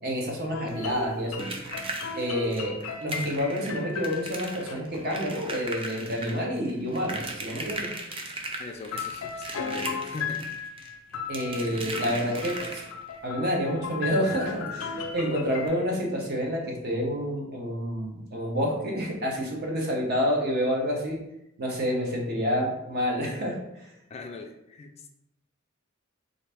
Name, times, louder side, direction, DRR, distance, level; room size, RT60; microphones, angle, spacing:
voice 1, 0.0-1.3 2.2-7.9 11.3-12.8 13.2-21.2 21.6-23.9, equal, 50° right, -1 dB, 0.9 m, -28 dB
sound 1, 0.5-4.8 8.1-8.2 8.9-15.8, left 5 dB, 90° left, 0.5 m, -36 dB
sound 2, 0.7-13.2 14.6-14.7 15.0-15.2 15.6-15.7, right 2 dB, 25° right, 0.5 m, -38 dB
voice 2, 8.5-10.4 24.1-25.1, left 3 dB, 30° left, 4 dB, 0.3 m, -40 dB
4.0 x 2.6 x 3.4 m, 0.88 s
head